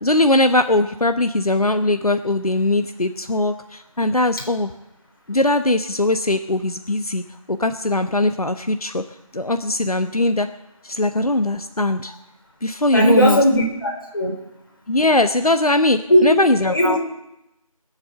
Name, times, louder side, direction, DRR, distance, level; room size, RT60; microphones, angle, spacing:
voice 1, 0.0-4.7 5.3-7.2 7.5-9.0 9.3-10.5 10.8-12.1 12.6-13.4 14.9-17.0, left 2 dB, 90° left, 8 dB, 1.1 m, -20 dB
voice 2, 12.9-14.3 16.1-16.4 16.7-17.0, equal, 40° left, -1 dB, 4.1 m, -17 dB
20.5 x 8.1 x 7.6 m, 0.90 s
figure-of-eight pair, 170°, 18 cm